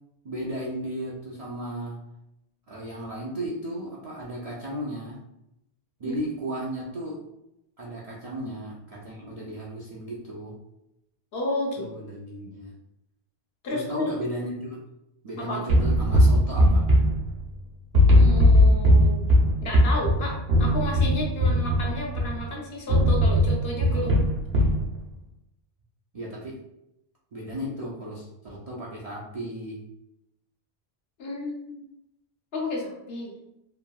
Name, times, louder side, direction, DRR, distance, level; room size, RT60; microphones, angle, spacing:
voice 1, 0.2-2.0 2.7-5.2 6.0-7.2 7.8-10.5 11.8-12.7 13.7-14.8 15.2-16.8 23.9-24.1 26.1-26.6 27.3-29.8, right 1 dB, 55° right, -5 dB, 0.4 m, -35 dB
voice 2, 11.3-11.9 13.6-14.1 15.4-15.6 18.1-19.3 19.6-24.3 31.2-31.8 32.5-33.3, left 1 dB, 70° left, -1 dB, 0.9 m, -32 dB
sound 1, 15.7-17.6 17.9-22.4 22.9-24.8, equal, 70° right, 0.9 m, -19 dB
3.0 x 2.6 x 2.3 m, 0.85 s
omnidirectional pair, 1.1 m